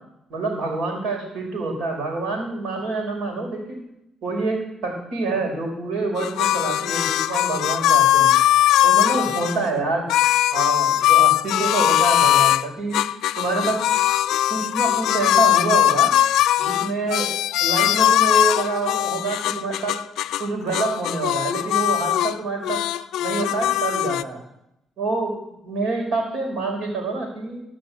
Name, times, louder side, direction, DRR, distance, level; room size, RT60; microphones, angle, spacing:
voice 1, 0.3-3.8 4.2-8.3 8.8-10.1 10.5-13.0 13.4-13.8 14.5-16.1 16.6-17.3 17.6-20.0 20.4-22.8 23.2-24.4 25.0-27.6, right 3 dB, 75° right, 1 dB, 4.7 m, -26 dB
sound 1, 6.2-9.6 10.1-12.6 12.9-20.5 20.7-22.4 22.6-24.2, left 13 dB, 85° left, 0.3 m, -20 dB
13.5 x 6.0 x 8.3 m, 0.81 s
cardioid pair, 90°, 0 cm